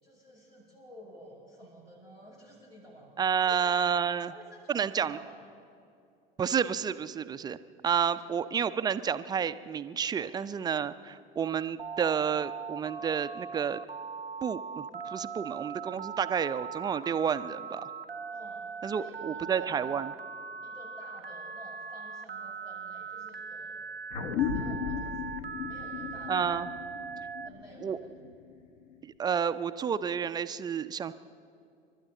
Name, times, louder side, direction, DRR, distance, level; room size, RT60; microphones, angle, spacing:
voice 1, 0.0-3.1 3.4-3.6 4.3-5.4 8.1-8.3 10.2-10.3 15.3-15.5 18.3-18.6 18.9-19.9 20.6-23.8 24.4-26.5 27.4-28.2, equal, 80° left, -4 dB, 5.3 m, -51 dB
voice 2, 3.2-4.3 4.7-5.2 6.4-7.6 7.8-13.8 14.4-17.9 18.8-20.1 26.3-26.7 27.8-28.0 29.0-31.1, right 7 dB, 15° right, 13 dB, 0.4 m, -30 dB
Telephone, 11.8-27.5, right 5 dB, 90° right, 0.6 m, -40 dB
sound 1, 24.1-29.0, left 7 dB, 55° left, 1.3 m, -36 dB
30.0 x 12.5 x 3.8 m, 2.5 s
figure-of-eight pair, 75°, 29 cm